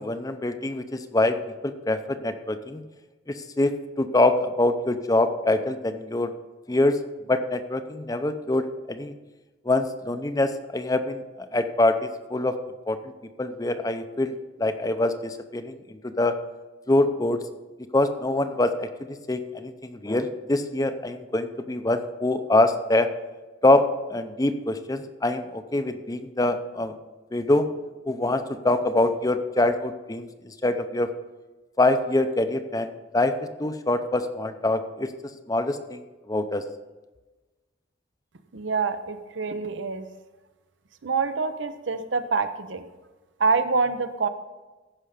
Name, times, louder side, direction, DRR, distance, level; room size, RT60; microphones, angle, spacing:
voice 1, 0.0-1.4 1.6-2.8 3.3-3.7 4.0-6.3 6.7-7.0 7.3-9.1 9.6-11.2 11.5-12.5 12.9-13.0 13.4-14.3 14.6-16.4 16.9-17.4 17.9-23.1 23.6-23.8 24.1-26.9 27.3-27.7 28.1-31.1 31.8-33.3 33.6-35.1 35.5-36.0 36.3-36.6, left 2 dB, 20° left, 9 dB, 0.5 m, -24 dB
voice 2, 38.5-40.0 41.0-42.8 43.4-44.3, right 4 dB, 85° right, 9 dB, 0.7 m, -26 dB
14.5 x 5.7 x 5.0 m, 1.2 s
head